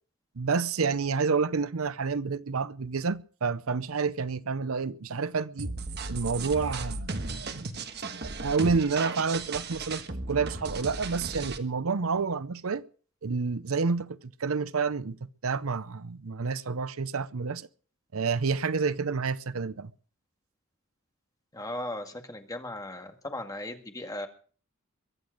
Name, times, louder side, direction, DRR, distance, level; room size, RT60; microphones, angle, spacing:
voice 1, 0.4-5.7 6.1-7.5 8.4-10.0 10.3-12.8 13.2-15.2 15.4-17.7 18.1-19.9, right 5 dB, 80° right, 0.7 m, -29 dB
sound 1, 5.6-11.6, right 3 dB, 50° right, 1.5 m, -35 dB
voice 2, 21.5-24.3, left 1 dB, 15° left, 2.0 m, -37 dB
23.0 x 8.1 x 6.5 m
head